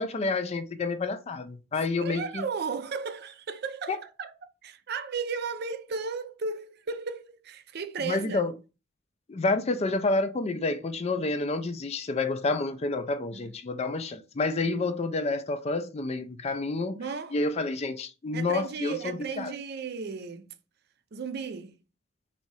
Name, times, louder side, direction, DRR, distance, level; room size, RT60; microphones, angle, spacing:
voice 1, 0.0-2.4 3.9-4.0 8.0-8.5 9.3-17.0 17.3-19.5, left 3 dB, 30° left, 0.4 m, -29 dB
voice 2, 2.0-4.3 4.6-8.4 13.3-13.5 16.9-17.4 18.3-20.5 21.1-21.8, right 5 dB, 50° right, 0.5 m, -35 dB
4.1 x 2.7 x 4.7 m
head